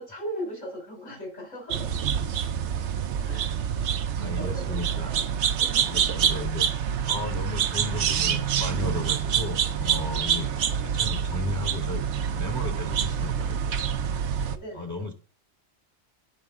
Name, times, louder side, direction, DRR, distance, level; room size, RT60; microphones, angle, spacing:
voice 1, 0.0-1.9 3.2-3.6 4.0-5.2 5.6-5.8 6.1-6.2 14.5-15.1, right 1 dB, 65° left, 1 dB, 4.0 m, -38 dB
sound 1, 1.7-14.6, right 8 dB, 65° right, 0.9 m, -26 dB
voice 2, 4.2-5.1 5.7-6.7 7.0-10.5 10.8-14.2 14.7-15.1, left 3 dB, 15° left, 3 dB, 1.1 m, -35 dB
9.9 x 5.1 x 3.6 m, 0.38 s
omnidirectional pair, 1.3 m